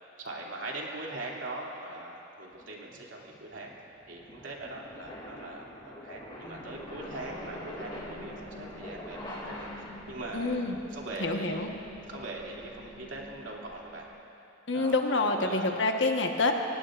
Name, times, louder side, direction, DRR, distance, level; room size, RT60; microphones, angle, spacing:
voice 1, 0.2-3.7 4.1-9.7 10.1-10.6 10.9-11.7 12.1-14.1 14.7-15.8, right 2 dB, 80° right, -3 dB, 2.6 m, -41 dB
sound 1, 2.6-10.2, left 1 dB, 25° left, 2.6 m, -44 dB
sound 2, 6.4-14.2, left 2 dB, 10° left, 2.3 m, -48 dB
voice 2, 10.3-10.8 11.2-11.8 14.7-16.5, left 3 dB, 65° left, 3 dB, 1.3 m, -27 dB
28.5 x 17.0 x 2.5 m, 2.8 s
head